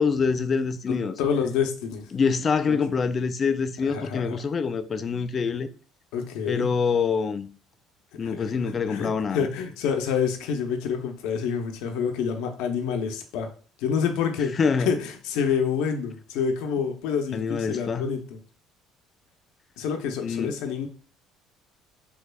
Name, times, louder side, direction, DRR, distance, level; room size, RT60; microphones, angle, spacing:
voice 1, 0.0-1.2 2.1-5.7 6.5-7.5 8.2-9.5 14.6-14.9 17.3-18.1 20.2-20.5, left 5 dB, 35° left, 0.3 m, -25 dB
voice 2, 0.9-2.1 2.7-2.8 3.9-4.4 6.1-6.7 8.1-13.5 13.8-14.6 14.9-18.4 19.8-20.9, left 6 dB, 80° left, 0.6 m, -28 dB
3.4 x 3.3 x 2.2 m
cardioid pair, 115°, 0 cm